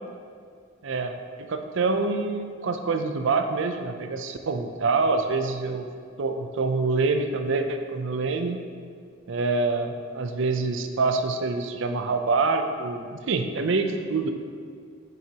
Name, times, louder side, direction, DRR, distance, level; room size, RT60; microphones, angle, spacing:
voice 1, 0.8-5.9 6.2-8.6 9.3-14.3, right 3 dB, 65° right, 6 dB, 0.5 m, -26 dB
7.6 x 6.0 x 2.9 m, 2.1 s
head